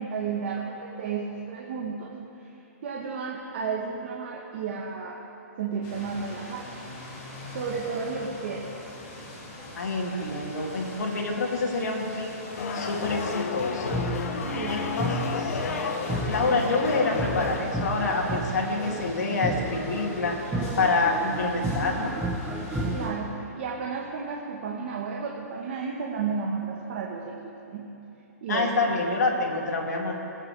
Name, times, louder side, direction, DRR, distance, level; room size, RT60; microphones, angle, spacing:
voice 1, 0.0-2.1 2.4-2.5 2.8-5.2 5.6-6.7 7.5-8.6 14.5-15.0 22.9-27.9 28.4-28.7, right 5 dB, 40° right, -2 dB, 1.1 m, -32 dB
sound 1, 5.8-23.1, left 1 dB, 30° left, 3.0 m, -43 dB
voice 2, 9.8-12.3 12.7-14.0 14.7-15.6 16.2-20.4 20.8-22.1 28.5-30.1, left 3 dB, 85° left, 0 dB, 2.4 m, -27 dB
sound 2, 12.6-17.6, left 5 dB, 60° left, 1.1 m, -31 dB
sound 3, 13.8-23.2, right 1 dB, 5° right, 0.6 m, -32 dB
21.5 x 9.1 x 3.3 m, 3.0 s
hypercardioid pair, 170°, 9 cm